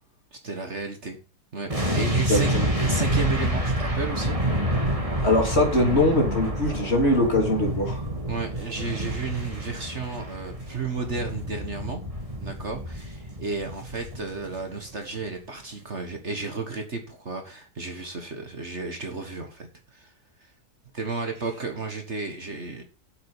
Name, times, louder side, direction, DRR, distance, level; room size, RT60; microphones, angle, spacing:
voice 1, 0.3-1.2 1.5-2.5 2.8-4.4 8.3-12.0 12.4-20.1 20.4-20.5 20.9-22.8, right 4 dB, 45° right, 5 dB, 1.7 m, -33 dB
sound 1, 1.7-14.8 15.1-15.3, right 1 dB, 20° right, 2.8 m, -28 dB
voice 2, 2.3-2.7 5.2-8.0, left 1 dB, 40° left, 1 dB, 3.3 m, -22 dB
8.1 x 7.7 x 7.2 m, 0.35 s
omnidirectional pair, 1.8 m